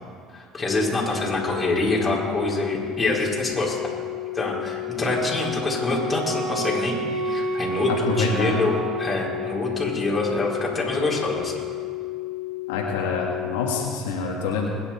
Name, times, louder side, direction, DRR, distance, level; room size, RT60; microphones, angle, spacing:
voice 1, 0.3-3.8 4.3-7.0 7.2-7.9 8.2-11.5, left 2 dB, 20° left, -4 dB, 4.4 m, -25 dB
sound 1, 0.7-13.9, left 21 dB, 70° left, 0.7 m, -33 dB
Wind instrument woodwind instrument, 5.0-9.8, right 6 dB, 55° right, 1.7 m, -31 dB
voice 2, 7.9-8.6 12.7-14.7, left 4 dB, 90° left, -1 dB, 1.9 m, -26 dB
21.5 x 9.9 x 4.4 m, 2.2 s
supercardioid pair, 85°, 0 cm